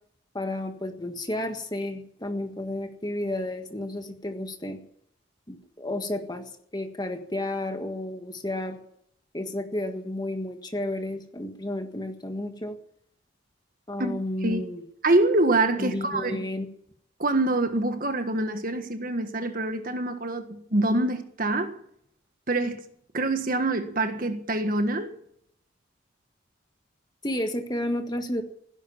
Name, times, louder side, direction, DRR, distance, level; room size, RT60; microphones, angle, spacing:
voice 1, 0.3-4.8 5.5-8.8 9.3-12.8 13.9-14.8 15.8-16.7 27.2-28.4, left 1 dB, 20° left, 1.6 m, -32 dB
voice 2, 15.0-16.5 17.2-21.8 22.5-22.8 23.1-25.1, right 2 dB, 45° right, 1.6 m, -25 dB
16.5 x 11.0 x 7.3 m
head